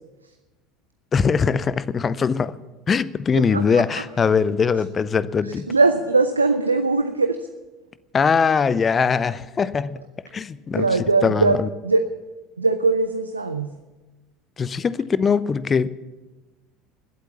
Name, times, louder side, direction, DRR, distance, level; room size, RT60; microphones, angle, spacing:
voice 1, 1.1-2.6 2.9-5.7 8.1-10.0 10.3-11.7 14.6-15.9, left 5 dB, 25° left, 19 dB, 0.6 m, -21 dB
voice 2, 5.7-7.4 10.7-11.6 11.8-12.0 12.6-13.7, right 3 dB, 85° right, 9 dB, 0.6 m, -20 dB
20.5 x 8.3 x 7.3 m, 1.2 s
figure-of-eight pair, 70°, 0 cm